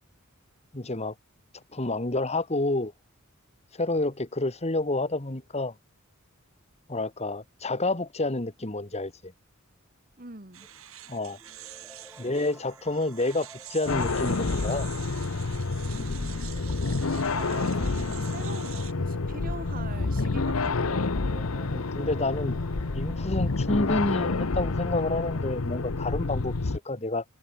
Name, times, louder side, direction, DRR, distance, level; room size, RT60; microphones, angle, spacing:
voice 1, 0.7-1.1 1.7-2.9 3.7-5.7 6.9-9.3 11.1-11.4 12.2-14.9 21.6-22.6 22.9-27.2, left 2 dB, 30° left, 1.7 m, -29 dB
voice 2, 10.2-10.7 15.8-16.6 17.1-21.1, right 3 dB, 40° right, 2.1 m, -43 dB
sound 1, 10.5-18.9, right 13 dB, 80° right, 5.7 m, -46 dB
sound 2, 10.6-24.2, right 1 dB, 5° right, 7.1 m, -53 dB
sound 3, 13.9-26.8, left 3 dB, 85° left, 1.0 m, -28 dB
head